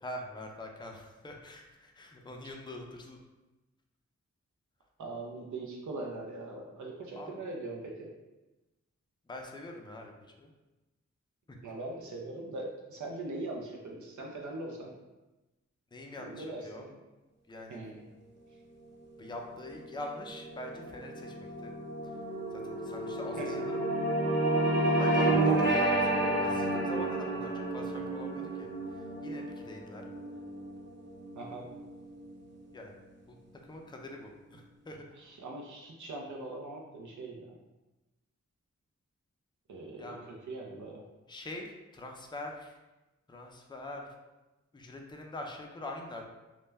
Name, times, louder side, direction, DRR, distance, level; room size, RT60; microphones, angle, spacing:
voice 1, 0.0-3.2 7.1-7.4 9.3-10.1 10.4-10.5 15.9-16.9 17.5-17.8 19.2-21.7 22.5-23.8 25.0-30.0 32.7-33.0 33.3-33.4 33.6-35.0 40.0-40.3 41.3-42.8 43.3-44.1 44.7-46.2, left 1 dB, 15° left, 1 dB, 0.4 m, -44 dB
voice 2, 5.0-8.1 11.6-14.9 16.2-16.9 17.7-18.0 23.4-23.6 31.3-31.7 35.2-37.5 39.7-40.2 40.5-41.0, right 2 dB, 80° right, -1 dB, 0.5 m, -41 dB
sound 1, 19.5-32.1, right 2 dB, 40° right, 0.6 m, -31 dB
2.2 x 2.1 x 3.3 m, 1.1 s
cardioid pair, 55°, 29 cm